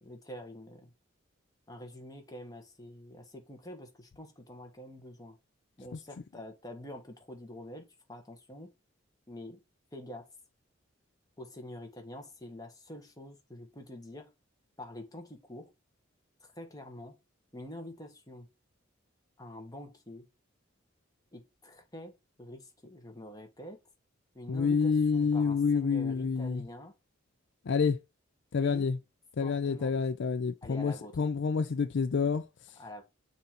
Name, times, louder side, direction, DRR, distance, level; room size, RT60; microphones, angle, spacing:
voice 1, 0.0-0.9 1.7-5.4 5.8-8.7 9.3-9.6 9.9-10.3 11.4-14.3 14.8-15.7 16.4-17.2 17.5-18.5 19.4-20.3 21.3-23.8 24.3-26.9 28.6-28.9 29.4-30.0 30.6-31.2 32.8-33.0, left 1 dB, 20° left, 1.4 m, -46 dB
voice 2, 24.5-26.7 27.6-28.0 28.5-29.0 29.4-32.8, left 5 dB, 65° left, 0.4 m, -28 dB
6.7 x 2.8 x 5.0 m
head